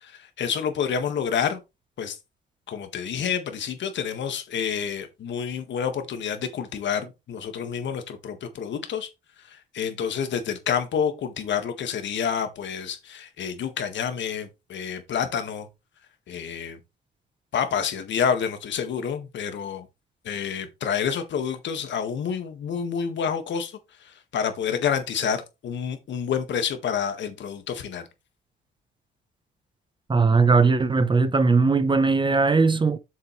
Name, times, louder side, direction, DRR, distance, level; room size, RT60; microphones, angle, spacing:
voice 1, 0.0-1.6 2.0-2.2 2.7-9.1 9.5-15.7 16.3-16.8 17.5-19.9 20.2-28.1, left 7 dB, 65° left, 1.8 m, -28 dB
voice 2, 30.1-33.0, right 4 dB, 25° right, 0.8 m, -19 dB
7.9 x 6.7 x 3.2 m
cardioid pair, 90°, 20 cm